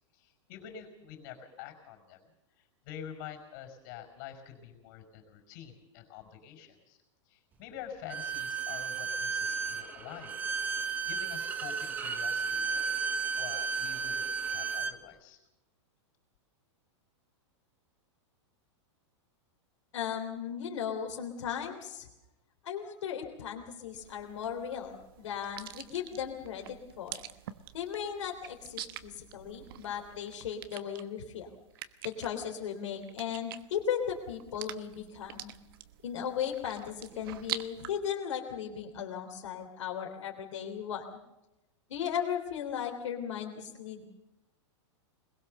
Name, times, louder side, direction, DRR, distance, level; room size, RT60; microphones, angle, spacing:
voice 1, 0.1-2.2 2.6-7.0 7.3-10.3 10.8-12.9 13.4-15.4, left 8 dB, 40° left, 5 dB, 5.5 m, -47 dB
Bowed string instrument, 8.1-15.0, right 5 dB, 10° right, 0.9 m, -33 dB
voice 2, 19.9-22.1 22.6-27.2 27.7-31.5 32.0-35.5 36.0-41.0 41.9-44.0, left 8 dB, 75° left, 3 dB, 3.4 m, -36 dB
sound 1, 23.9-37.9, right 12 dB, 50° right, 1.1 m, -46 dB
22.5 x 21.5 x 6.7 m, 0.94 s
supercardioid pair, 175°, 16 cm